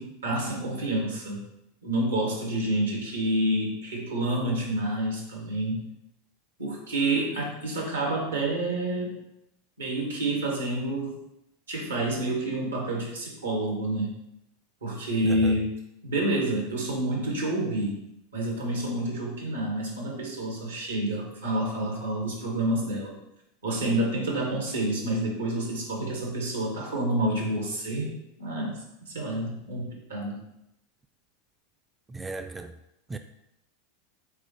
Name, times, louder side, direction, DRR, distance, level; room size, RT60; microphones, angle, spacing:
voice 1, 0.0-1.5 1.8-5.8 6.6-9.2 9.8-11.1 11.7-14.1 14.8-15.7 16.0-18.0 18.3-23.1 23.6-30.4, right 1 dB, 85° right, 1.6 m, -28 dB
voice 2, 32.1-32.7 33.1-33.2, right 3 dB, 15° right, 0.3 m, -35 dB
4.7 x 3.8 x 2.9 m
hypercardioid pair, 90°, 0 cm